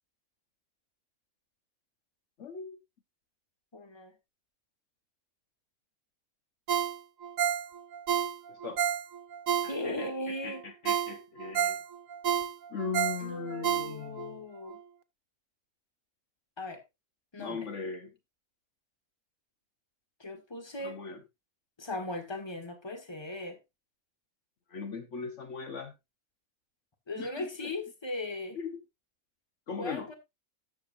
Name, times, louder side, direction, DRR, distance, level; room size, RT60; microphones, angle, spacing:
voice 1, 2.4-2.8 8.5-8.8 9.6-11.8 12.7-14.4 17.4-18.1 20.8-21.2 24.7-25.9 27.2-27.7 28.5-28.8 29.7-30.1, left 5 dB, 60° left, 1.3 m, -39 dB
voice 2, 3.7-4.2 9.7-10.6 13.2-14.8 16.6-16.8 17.3-17.7 20.2-21.0 21.8-23.6 27.1-28.6 29.8-30.1, left 2 dB, 20° left, 1.6 m, -38 dB
Ringtone, 6.7-10.1 10.5-10.6 10.9-14.3 14.7-14.8, right 8 dB, 75° right, 1.2 m, -30 dB
13.0 x 7.9 x 2.6 m
omnidirectional pair, 1.4 m